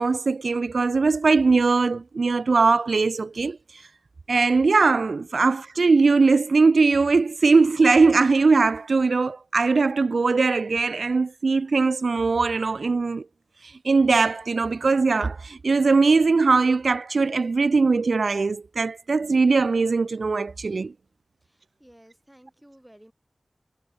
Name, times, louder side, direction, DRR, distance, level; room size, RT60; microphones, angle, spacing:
voice 1, 0.0-3.8 4.3-13.2 13.6-20.9, right 4 dB, 80° right, 0.3 m, -20 dB
voice 2, 21.4-23.1, equal, 10° right, 7.7 m, -53 dB
wide cardioid pair, 80°, 0 cm